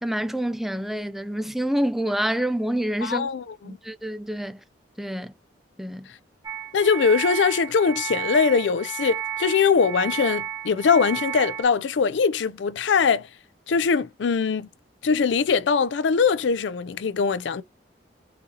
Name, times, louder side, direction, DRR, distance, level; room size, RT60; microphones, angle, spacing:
voice 1, 0.0-3.3 3.6-4.6 5.0-5.3 5.8-6.1, right 1 dB, ahead, 0.4 m, -27 dB
voice 2, 3.0-3.8 6.7-13.3 13.7-14.7 15.0-17.6, left 5 dB, 80° left, 0.4 m, -22 dB
sound 1, 6.4-11.6, right 8 dB, 25° right, 2.1 m, -32 dB
4.1 x 3.9 x 2.8 m
head